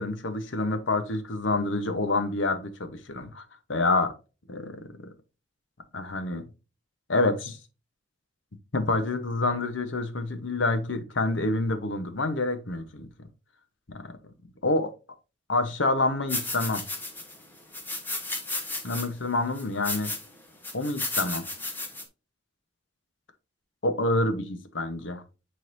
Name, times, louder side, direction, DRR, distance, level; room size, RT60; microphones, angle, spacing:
voice 1, 0.0-3.4 3.7-4.1 4.5-4.8 5.9-6.4 7.1-7.6 8.7-13.1 14.6-14.9 15.5-16.8 18.8-20.1 20.7-21.4 23.8-25.2, left 2 dB, 80° left, 1.0 m, -27 dB
sound 1, 16.3-17.4 17.7-19.1 19.6-20.3 20.6-22.0, left 2 dB, 10° left, 1.1 m, -33 dB
9.3 x 4.0 x 2.7 m
head